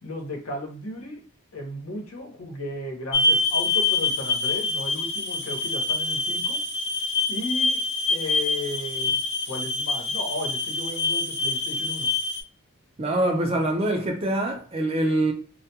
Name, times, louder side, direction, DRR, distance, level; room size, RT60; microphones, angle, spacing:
voice 1, 0.0-1.2 1.5-6.6 7.3-7.8 8.1-9.2 9.5-12.1, left 1 dB, 75° left, 0.9 m, -34 dB
sound 1, 3.1-12.4, left 3 dB, 50° left, 0.5 m, -26 dB
voice 2, 13.0-15.3, right 1 dB, 25° right, 0.4 m, -24 dB
2.2 x 2.2 x 2.7 m
head